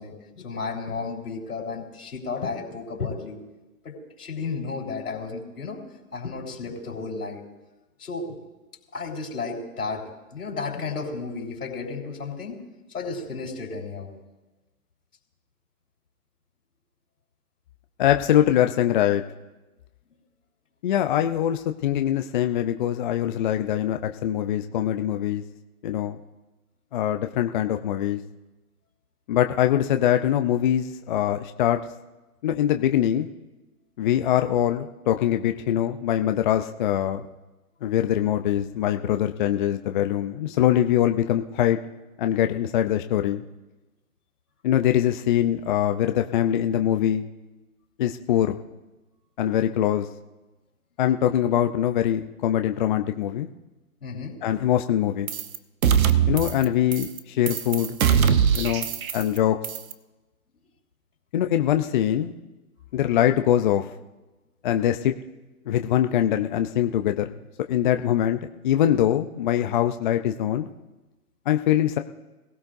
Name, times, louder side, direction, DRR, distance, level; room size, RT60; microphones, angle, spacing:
voice 1, 0.0-3.4 3.8-5.8 6.1-7.4 8.0-8.4 8.9-12.6 12.9-14.1 54.0-54.3 58.8-58.9, left 4 dB, 90° left, 1 dB, 4.4 m, -33 dB
voice 2, 18.0-19.2 20.8-25.4 25.8-26.2 26.9-28.2 29.3-31.8 32.4-33.3 34.0-37.2 37.8-41.8 42.2-43.4 44.6-47.3 48.0-48.6 49.4-50.1 51.0-53.5 54.4-55.3 56.3-58.0 58.5-59.6 61.3-62.4 62.9-63.9 64.6-65.1 65.7-67.3 67.7-70.7 71.5-72.0, left 11 dB, 35° left, 6 dB, 0.5 m, -23 dB
sound 1, 55.3-55.6 55.8-56.6 56.9-57.2 57.5-59.4 59.6-59.9, right 8 dB, 65° right, 1.1 m, -22 dB
22.0 x 16.5 x 2.6 m, 1.1 s
hypercardioid pair, 135°, 44 cm